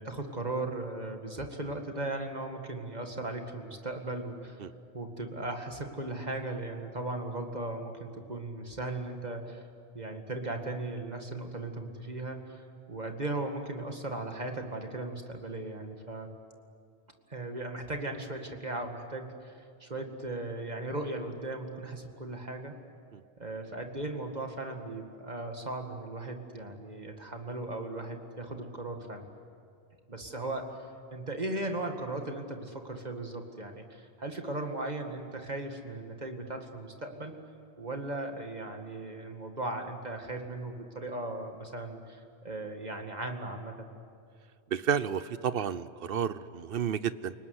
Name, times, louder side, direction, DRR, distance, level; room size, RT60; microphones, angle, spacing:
voice 1, 0.0-4.6 4.9-9.6 9.9-16.3 17.3-22.8 23.4-29.3 30.1-37.3 37.8-43.9, right 2 dB, 40° right, 4 dB, 2.2 m, -37 dB
voice 2, 44.7-47.3, right 8 dB, 60° right, 15 dB, 1.0 m, -31 dB
29.5 x 19.0 x 9.6 m, 2.3 s
omnidirectional pair, 1.1 m